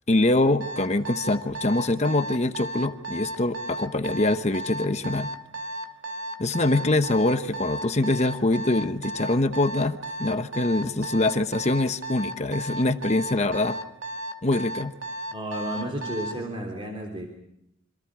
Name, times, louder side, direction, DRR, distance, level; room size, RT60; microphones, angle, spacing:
voice 1, 0.1-5.3 6.4-13.8 14.4-14.9, left 2 dB, 30° left, 8 dB, 1.0 m, -24 dB
Alarm, 0.6-16.4, right 1 dB, 65° right, 2.5 m, -34 dB
voice 2, 15.3-17.3, right 1 dB, 25° right, 1 dB, 3.4 m, -32 dB
27.0 x 26.0 x 4.9 m, 0.78 s
head